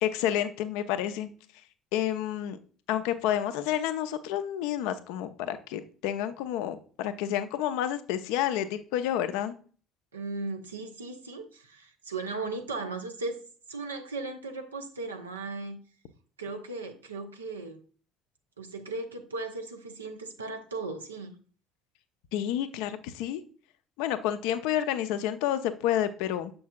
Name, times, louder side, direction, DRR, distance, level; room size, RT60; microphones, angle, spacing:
voice 1, 0.0-1.3 1.9-2.6 2.9-9.5 22.3-23.4 24.0-26.5, left 11 dB, 70° left, 0.6 m, -29 dB
voice 2, 10.1-13.4 13.7-15.8 16.4-17.8 18.6-21.3, right 3 dB, 85° right, 0.8 m, -37 dB
7.2 x 6.2 x 2.3 m
figure-of-eight pair, 55°, 0 cm